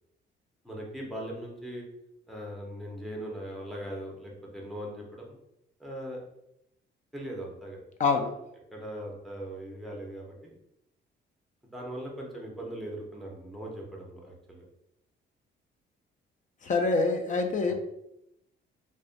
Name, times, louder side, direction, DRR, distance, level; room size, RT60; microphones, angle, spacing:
voice 1, 0.6-1.8 2.3-5.4 5.8-6.2 7.1-7.8 8.7-10.5 11.7-14.6 17.6-17.7, right 1 dB, ahead, -2 dB, 0.7 m, -40 dB
voice 2, 8.0-8.3 16.6-17.7, left 3 dB, 40° left, 5 dB, 0.4 m, -25 dB
2.5 x 2.2 x 2.4 m, 0.81 s
cardioid pair, 90°, 20 cm